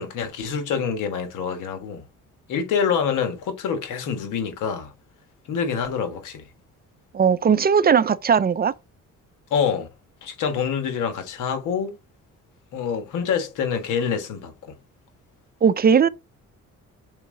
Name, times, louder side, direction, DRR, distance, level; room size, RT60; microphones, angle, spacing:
voice 1, 0.0-2.0 2.5-4.9 5.5-6.4 9.5-9.9 10.2-11.9 12.7-14.5, left 6 dB, 90° left, 1.6 m, -26 dB
voice 2, 7.1-8.7 15.6-16.1, right 7 dB, 30° right, 0.5 m, -18 dB
5.7 x 4.3 x 3.9 m
cardioid pair, 90°, 30 cm